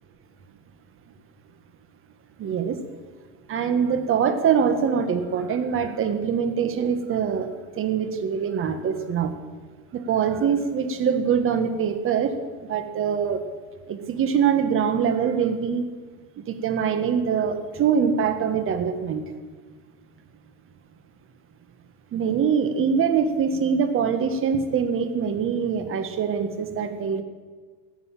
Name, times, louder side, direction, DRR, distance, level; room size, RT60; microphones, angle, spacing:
voice 1, 2.4-2.8 3.5-7.5 7.8-9.3 9.9-12.3 12.7-13.4 13.9-15.8 16.5-19.2 22.1-27.2, right 7 dB, 30° right, 9 dB, 1.5 m, -23 dB
17.5 x 6.9 x 8.7 m, 1.5 s
supercardioid pair, 130°, 45 cm